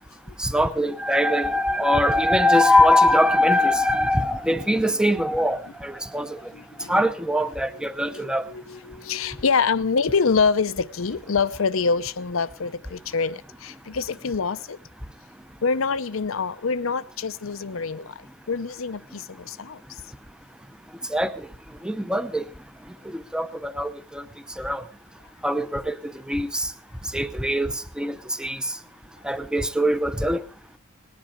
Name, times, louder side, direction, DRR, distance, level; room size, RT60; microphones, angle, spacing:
voice 1, 0.4-6.5 6.9-8.5 21.1-21.5 21.8-22.4 23.0-24.2 24.6-24.8 25.4-26.7 27.1-28.8 29.2-30.4, left 1 dB, 5° right, 0.8 m, -22 dB
voice 2, 6.5-6.9 8.1-14.8 15.6-18.1 18.5-19.8, left 5 dB, 70° left, 0.7 m, -25 dB
19.5 x 10.5 x 4.9 m
head